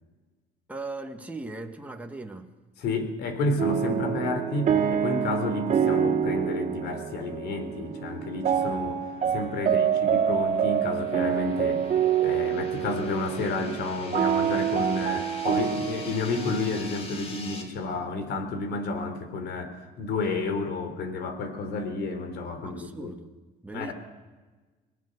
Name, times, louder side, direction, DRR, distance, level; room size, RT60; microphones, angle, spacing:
voice 1, 0.7-2.5 4.2-4.3 9.6-10.0 22.6-23.3 23.6-23.9, right 2 dB, 10° right, 3 dB, 1.8 m, -39 dB
voice 2, 2.8-9.0 9.3-11.8 12.2-23.1 23.7-23.9, left 3 dB, 75° left, 9 dB, 3.8 m, -31 dB
sound 1, 3.6-17.6, right 8 dB, 50° right, 2.6 m, -27 dB
sound 2, 7.2-17.6, left 3 dB, 40° left, 4.4 m, -45 dB
26.0 x 19.0 x 6.7 m, 1.3 s
cardioid pair, 110°, 17 cm